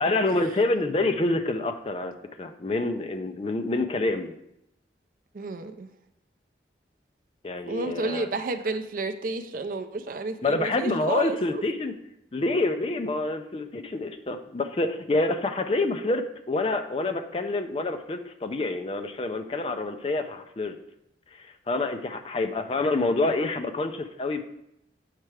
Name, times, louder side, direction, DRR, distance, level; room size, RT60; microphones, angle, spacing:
voice 1, 0.0-4.4 7.4-8.3 10.4-11.9 12.3-20.8 21.3-24.4, left 2 dB, 30° left, 7 dB, 0.4 m, -27 dB
voice 2, 5.3-5.9 7.6-11.6, right 3 dB, 50° right, 8 dB, 0.4 m, -31 dB
7.4 x 4.6 x 3.2 m, 0.82 s
head